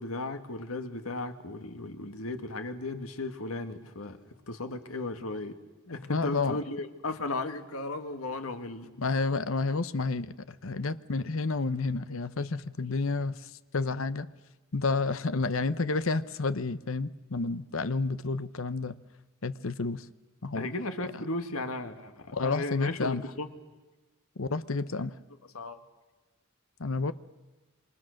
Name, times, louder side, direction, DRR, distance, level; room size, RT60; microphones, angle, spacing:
voice 1, 0.0-4.2 4.5-5.6 5.9-8.9 20.6-23.5 25.5-25.8, left 2 dB, 90° left, 1.9 m, -35 dB
voice 2, 6.1-6.6 9.0-14.3 14.7-19.0 19.4-20.1 20.4-20.7 22.3-23.2 24.4-25.1 26.8-27.1, left 3 dB, 70° left, 0.9 m, -30 dB
27.5 x 25.0 x 6.5 m
head